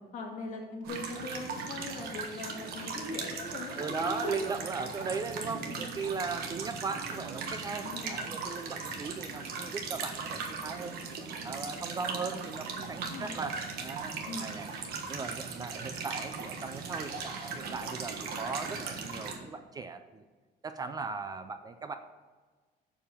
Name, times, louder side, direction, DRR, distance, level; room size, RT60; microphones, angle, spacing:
voice 1, 0.1-4.4 5.5-5.9 7.8-8.3 13.0-13.4 14.3-14.5, left 3 dB, 50° left, 0 dB, 2.1 m, -40 dB
sound 1, 0.8-19.4, right 5 dB, 65° right, 1.4 m, -38 dB
voice 2, 3.8-11.0 11.4-14.7 15.1-20.2 20.6-22.0, right 4 dB, 25° right, 9 dB, 0.4 m, -38 dB
7.3 x 7.0 x 5.2 m, 1.4 s
cardioid pair, 170°, 17 cm